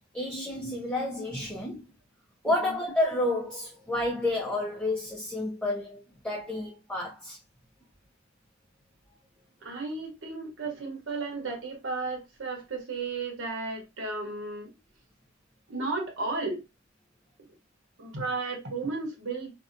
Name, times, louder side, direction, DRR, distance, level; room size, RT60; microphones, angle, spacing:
voice 1, 0.1-1.8 2.4-7.4, left 1 dB, 5° left, 0.5 m, -30 dB
voice 2, 9.6-14.7 15.7-16.6 18.0-19.5, right 3 dB, 65° right, 1.0 m, -34 dB
2.7 x 2.1 x 2.5 m
head